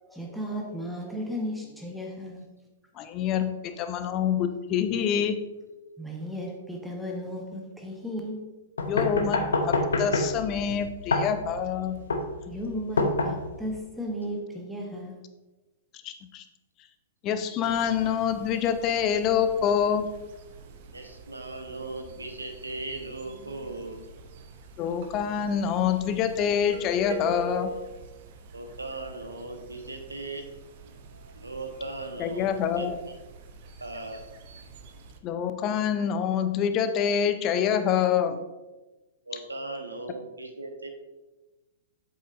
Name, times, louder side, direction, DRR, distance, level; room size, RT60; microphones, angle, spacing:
voice 1, 0.0-2.4 6.0-8.4 12.5-15.2, equal, ahead, 0 dB, 1.1 m, -35 dB
voice 2, 3.0-5.4 8.9-12.0 16.0-16.4 17.2-20.1 24.8-27.7 32.2-32.9 35.2-38.4, left 8 dB, 30° left, 10 dB, 0.6 m, -26 dB
sound 1, 8.8-13.8, left 2 dB, 70° left, 0.8 m, -27 dB
sound 2, 17.6-35.2, right 1 dB, 50° right, 0.8 m, -45 dB
voice 3, 20.9-24.1 28.5-30.5 30.8-32.9 33.8-34.2 39.2-40.9, right 2 dB, 80° right, 4 dB, 1.1 m, -38 dB
7.9 x 7.8 x 2.6 m, 1.1 s
figure-of-eight pair, 105°, 0 cm